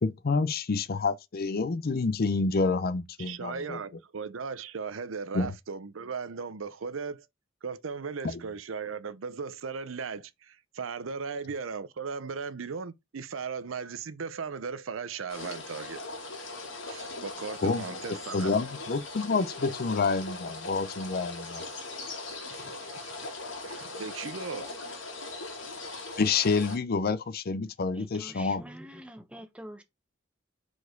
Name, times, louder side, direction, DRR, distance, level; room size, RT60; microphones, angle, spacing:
voice 1, 0.0-3.8 5.3-5.5 17.6-18.0 18.3-21.6 26.2-28.6, left 4 dB, 50° left, 0.5 m, -28 dB
voice 2, 3.2-7.3 7.6-16.0 16.9-18.5 22.5-23.3 23.6-24.7, right 5 dB, 85° right, 0.6 m, -37 dB
sound 1, 15.3-26.8, left 2 dB, 70° left, 2.2 m, -40 dB
voice 3, 28.0-29.8, equal, 5° right, 1.0 m, -45 dB
4.8 x 4.1 x 5.1 m
head